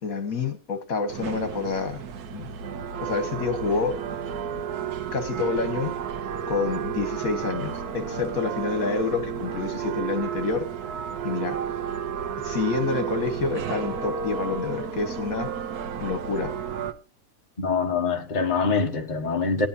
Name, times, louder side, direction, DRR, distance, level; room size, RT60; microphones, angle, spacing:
voice 1, 0.0-2.0 2.3-2.5 3.0-4.0 5.1-5.9 6.5-10.7 11.2-11.6 12.4-15.5 16.0-16.5, left 4 dB, 65° left, 1.8 m, -28 dB
sound 1, 1.1-16.9, right 7 dB, 90° right, 1.3 m, -32 dB
voice 2, 17.6-19.7, left 4 dB, 30° left, 1.4 m, -24 dB
18.0 x 10.5 x 2.8 m
omnidirectional pair, 1.6 m